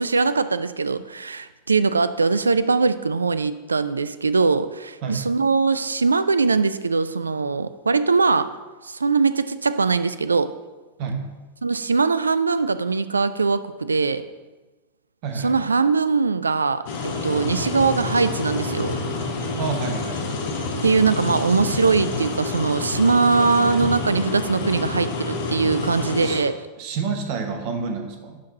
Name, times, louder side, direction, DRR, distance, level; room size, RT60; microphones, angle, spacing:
voice 1, 0.0-8.5 8.8-10.5 11.6-14.2 15.4-16.8 17.2-19.0 20.8-26.5, right 4 dB, 75° right, 13 dB, 0.3 m, -21 dB
voice 2, 15.2-15.6 19.5-20.2 23.4-23.8 26.2-26.4 26.8-28.4, right 5 dB, 45° right, 5 dB, 1.1 m, -29 dB
sound 1, 16.9-26.4, left 3 dB, 55° left, 1.2 m, -28 dB
11.5 x 4.1 x 4.1 m, 1.2 s
figure-of-eight pair, 90°, 0 cm